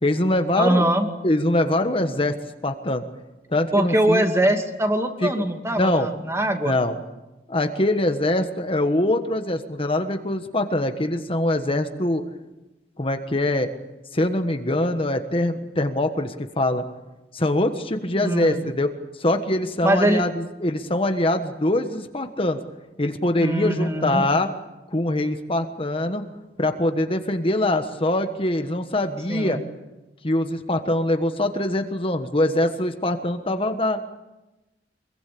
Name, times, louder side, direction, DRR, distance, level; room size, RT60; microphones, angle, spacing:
voice 1, 0.0-0.8 1.2-2.3 2.6-3.0 3.5-4.3 5.2-5.5 5.7-6.1 6.6-7.0 7.5-12.2 13.0-13.7 14.1-16.8 17.3-18.9 19.2-22.6 23.0-24.5 24.9-26.2 26.6-29.6 30.2-34.0, left 1 dB, 30° left, 6 dB, 1.4 m, -23 dB
voice 2, 0.6-1.1 3.7-6.7 18.2-18.6 19.8-20.2 23.4-24.3 29.3-29.6, right 1 dB, 15° right, 4 dB, 2.4 m, -22 dB
25.0 x 23.0 x 8.6 m, 1.0 s
head